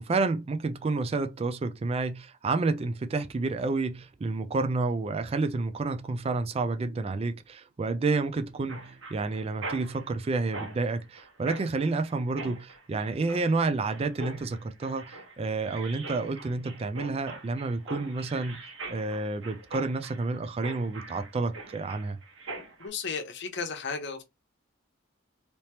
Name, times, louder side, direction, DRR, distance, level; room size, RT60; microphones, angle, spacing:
voice 1, 0.0-18.6 18.9-22.2, right 3 dB, 30° right, 0.4 m, -30 dB
Mechanisms, 8.7-22.9, right 2 dB, 90° right, 1.2 m, -43 dB
voice 2, 22.8-24.2, left 5 dB, 65° left, 0.8 m, -34 dB
3.4 x 2.8 x 2.9 m
head